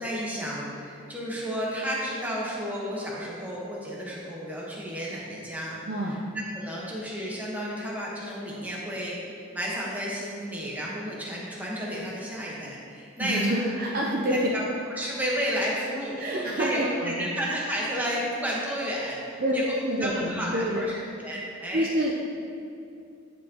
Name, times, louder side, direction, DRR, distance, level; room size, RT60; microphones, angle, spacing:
voice 1, 0.0-5.8 6.5-9.2 9.5-13.6 14.2-14.6 15.0-20.9 21.2-21.9, equal, 10° right, -5 dB, 1.1 m, -32 dB
voice 2, 5.9-6.2 13.2-14.5 16.2-17.3 19.4-19.6 19.8-20.9 21.7-22.1, equal, 45° right, -2 dB, 0.5 m, -27 dB
10.5 x 4.5 x 2.9 m, 2.5 s
head